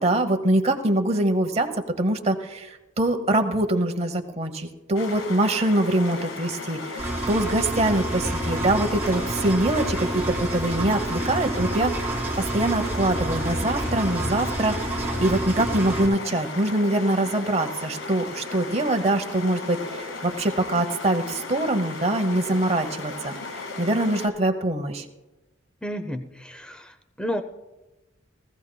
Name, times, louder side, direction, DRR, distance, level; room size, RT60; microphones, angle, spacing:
voice 1, 0.0-1.7 2.0-23.3 23.8-25.0, right 1 dB, 30° right, 6 dB, 0.9 m, -24 dB
sound 1, 4.9-24.3, left 3 dB, 85° left, 1.3 m, -36 dB
Engine, 7.0-16.1, right 1 dB, 10° right, 3.1 m, -29 dB
voice 2, 25.8-27.4, equal, 5° left, 8 dB, 0.7 m, -32 dB
19.0 x 15.0 x 2.3 m, 1.0 s
head